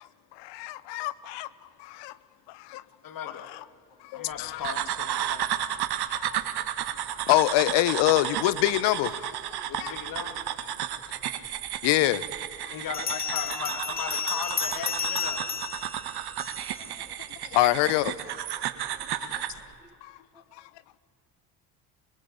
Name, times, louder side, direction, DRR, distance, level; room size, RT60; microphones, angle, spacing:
voice 1, 0.4-1.5 1.8-2.1 2.5-2.8 4.0-4.6 6.1-6.4 7.3-9.3 9.8-10.0 11.8-12.2 12.6-12.7 17.4-18.1 18.5-18.6 19.2-19.5 20.0-20.2, left 16 dB, 60° left, 1.1 m, -25 dB
voice 2, 3.0-3.5 4.1-5.5 9.7-10.4 12.7-15.5, left 7 dB, 45° left, 2.8 m, -37 dB
sound 1, 4.6-19.6, right 11 dB, 55° right, 1.9 m, -33 dB
voice 3, 9.5-9.9 16.8-17.5 19.0-19.5 19.8-20.0 20.3-20.4, equal, 10° right, 4.1 m, -58 dB
Bell, 11.7-11.8 12.9-16.8, left 5 dB, 20° left, 1.3 m, -32 dB
22.5 x 22.0 x 8.5 m
hypercardioid pair, 65°, 47 cm